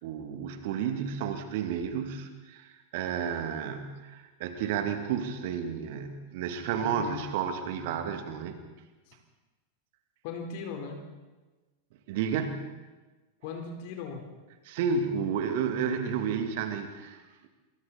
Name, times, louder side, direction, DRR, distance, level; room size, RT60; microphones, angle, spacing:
voice 1, 0.0-8.6 12.1-12.7 14.7-17.5, right 7 dB, 50° right, 7 dB, 2.5 m, -32 dB
voice 2, 6.8-7.2 9.1-9.2 10.2-11.1 13.4-14.3, left 5 dB, 50° left, 2 dB, 4.1 m, -38 dB
28.5 x 23.0 x 4.3 m, 1.2 s
figure-of-eight pair, 90°, 0 cm